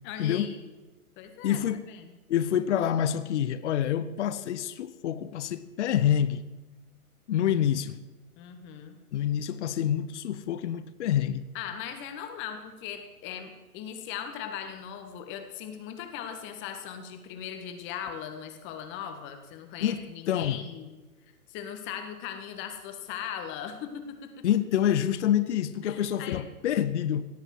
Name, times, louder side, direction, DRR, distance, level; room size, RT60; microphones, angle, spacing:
voice 1, 0.0-0.6 1.2-1.6 1.9-2.1 8.4-9.0 11.5-20.9 21.5-24.4 25.8-26.4, left 8 dB, 25° left, 1.7 m, -39 dB
voice 2, 1.4-1.8 2.3-6.4 7.3-8.0 9.1-11.4 19.8-20.0 20.3-20.6 24.4-27.3, left 10 dB, 50° left, 0.8 m, -27 dB
17.5 x 7.9 x 7.6 m
hypercardioid pair, 130°, 45 cm